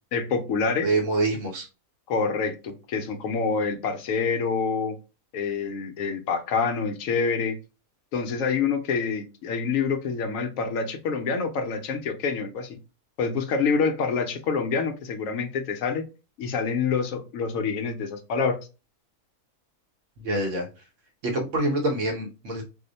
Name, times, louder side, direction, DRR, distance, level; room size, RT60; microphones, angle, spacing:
voice 1, 0.1-0.9 2.1-5.0 5.3-7.6 8.1-12.8 13.2-16.0 16.4-18.6, left 5 dB, 70° left, 0.9 m, -26 dB
voice 2, 0.8-1.7 20.2-20.7 21.2-22.6, right 2 dB, 60° right, 1.0 m, -26 dB
2.7 x 2.1 x 3.8 m
omnidirectional pair, 1.6 m